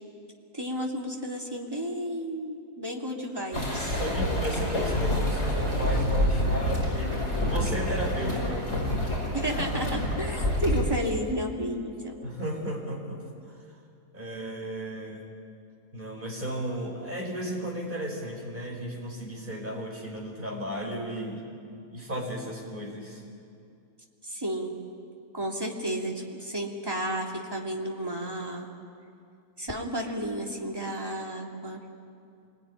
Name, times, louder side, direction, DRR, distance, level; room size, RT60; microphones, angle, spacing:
voice 1, 0.5-4.0 9.3-12.1 24.2-24.7 25.3-28.7 29.6-31.8, equal, 15° right, -1 dB, 2.8 m, -32 dB
sound 1, 3.5-10.8, left 1 dB, 40° left, 5.5 m, -27 dB
voice 2, 3.7-8.7 12.2-13.5 14.1-15.2 15.9-21.4 21.9-23.2, right 1 dB, 30° right, -1 dB, 5.3 m, -34 dB
26.5 x 21.0 x 10.0 m, 2.5 s
omnidirectional pair, 1.7 m